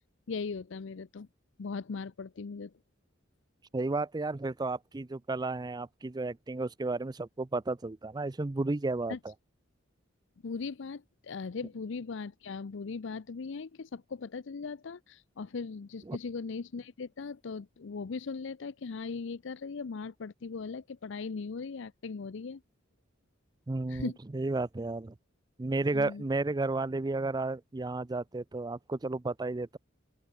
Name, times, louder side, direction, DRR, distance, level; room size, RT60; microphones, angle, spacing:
voice 1, 0.3-1.3 1.6-2.7 9.1-9.2 10.4-22.6 23.9-24.2 25.9-26.2, left 4 dB, 65° left, 0.5 m, -39 dB
voice 2, 3.7-9.3 16.0-16.2 23.7-25.1 25.6-29.8, right 2 dB, 20° right, 0.5 m, -33 dB
open air
head